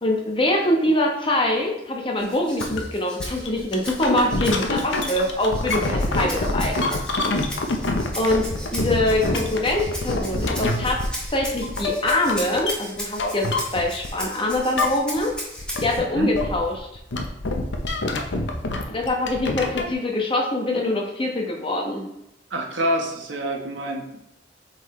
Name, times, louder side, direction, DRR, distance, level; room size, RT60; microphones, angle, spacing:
voice 1, 0.0-7.0 8.2-13.5 13.7-15.3 15.8-16.9 18.9-22.0, left 1 dB, 25° left, 1 dB, 1.0 m, -24 dB
Rattle (instrument), 2.2-16.0, equal, 5° left, 1.4 m, -37 dB
sound 1, 2.6-2.8 3.2-14.2 14.5-15.3 15.6-19.9, left 2 dB, 75° left, 0.8 m, -26 dB
voice 2, 16.0-16.3 22.5-24.2, equal, 80° right, 1 dB, 1.1 m, -27 dB
8.0 x 4.1 x 3.1 m, 0.83 s
head